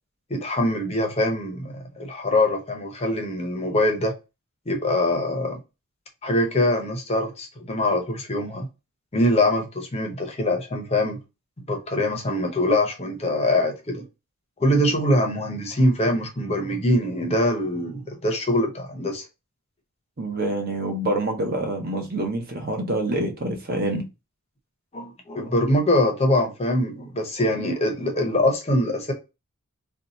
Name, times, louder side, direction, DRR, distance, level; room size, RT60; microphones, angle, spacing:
voice 1, 0.3-4.1 4.7-5.6 6.2-8.7 9.1-11.2 11.7-14.0 14.6-19.3 24.9-29.1, left 1 dB, 30° left, 0.6 m, -23 dB
voice 2, 20.2-24.1, right 1 dB, 45° right, 0.7 m, -26 dB
2.7 x 2.3 x 3.9 m
head